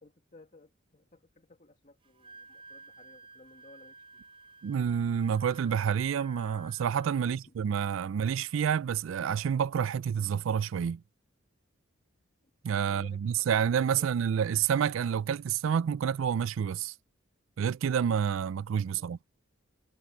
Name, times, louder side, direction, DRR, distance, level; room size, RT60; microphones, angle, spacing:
voice 1, 0.0-4.0 7.2-7.5 12.8-13.5 13.9-14.3 18.9-19.1, left 2 dB, 40° left, 1.9 m, -57 dB
Wind instrument woodwind instrument, 2.0-7.4, right 3 dB, 25° right, 0.7 m, -53 dB
voice 2, 4.6-11.0 12.6-16.9 17.6-19.2, right 7 dB, 70° right, 0.3 m, -28 dB
head